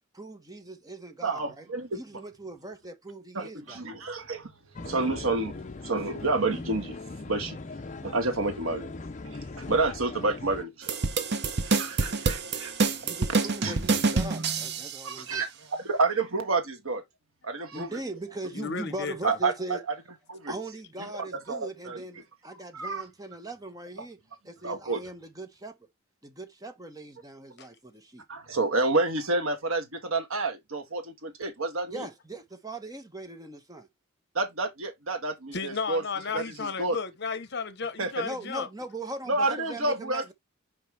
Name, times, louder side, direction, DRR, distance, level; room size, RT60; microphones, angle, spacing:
voice 1, 0.1-1.7 1.9-3.8 13.0-15.4 17.7-19.8 20.5-24.2 24.4-25.9 26.2-28.2 31.9-33.9 38.2-40.3, right 2 dB, 20° right, 1.3 m, -40 dB
voice 2, 1.2-2.0 3.3-4.5 4.8-5.6 5.8-7.0 7.3-7.6 8.0-8.9 9.2-11.0 11.6-12.7 13.6-13.7 15.0-17.0 17.4-17.9 19.2-19.5 20.3-20.5 21.5-22.0 22.7-23.0 24.6-25.0 28.3-32.1 34.3-36.0 36.3-37.0 38.0-38.1 39.3-40.3, right 3 dB, 85° right, 1.6 m, -29 dB
sound 1, 4.7-10.6, left 3 dB, 35° left, 0.6 m, -39 dB
sound 2, 10.8-15.0, right 4 dB, 55° right, 0.9 m, -27 dB
voice 3, 18.5-19.4 27.6-27.7 35.5-38.7, left 5 dB, 55° left, 1.1 m, -33 dB
5.5 x 5.1 x 3.4 m
head